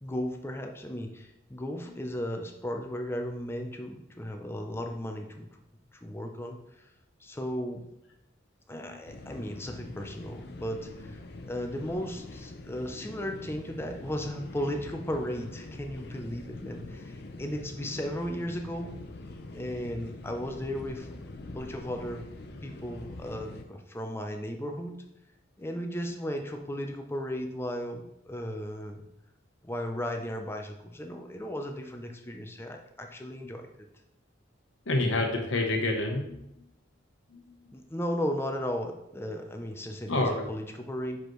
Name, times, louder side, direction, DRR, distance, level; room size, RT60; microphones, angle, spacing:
voice 1, 0.0-5.5 6.0-6.9 7.2-8.0 8.7-18.9 19.5-21.1 21.5-22.2 22.6-25.0 25.6-29.1 29.6-33.7 37.7-41.2, equal, 15° left, 4 dB, 0.6 m, -35 dB
voice 2, 8.7-9.0 34.9-36.4 37.3-37.4 40.1-40.5, left 2 dB, 85° left, 2 dB, 1.0 m, -28 dB
sound 1, 9.1-23.6, left 2 dB, 55° left, 0.6 m, -44 dB
6.0 x 5.1 x 3.1 m, 0.84 s
head